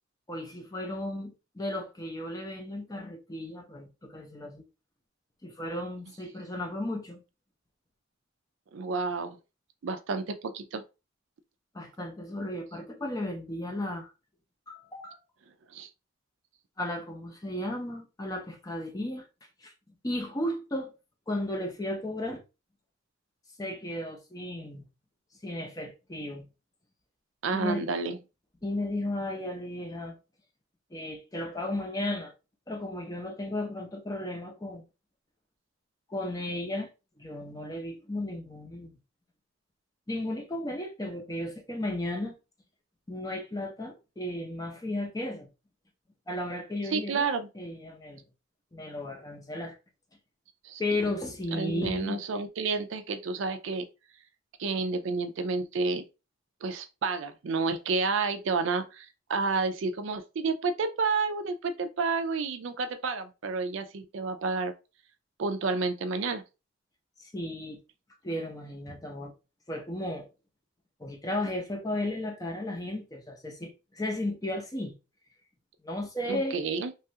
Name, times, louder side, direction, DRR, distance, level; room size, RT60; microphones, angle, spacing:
voice 1, 0.3-4.6 5.4-7.2 11.7-14.1 14.7-15.2 16.8-19.2 19.6-19.7 20.0-20.9 21.3-22.4 23.6-24.8 25.4-26.5 27.5-27.9 28.6-30.2 30.9-32.3 32.7-34.8 36.1-36.9 37.2-39.0 40.1-42.3 43.1-45.5 46.3-47.3 47.5-48.2 48.7-49.8 50.8-52.2 67.2-67.8 68.2-69.3 69.7-70.3 71.0-74.9 75.8-76.6, left 1 dB, 20° left, 0.6 m, -34 dB
voice 2, 8.7-9.4 9.8-10.8 15.7-15.9 27.4-28.2 46.9-47.5 50.6-50.8 51.5-53.9 54.6-56.0 56.6-64.7 65.4-66.4 76.2-76.9, right 4 dB, 65° right, 0.4 m, -30 dB
3.1 x 2.4 x 2.7 m
head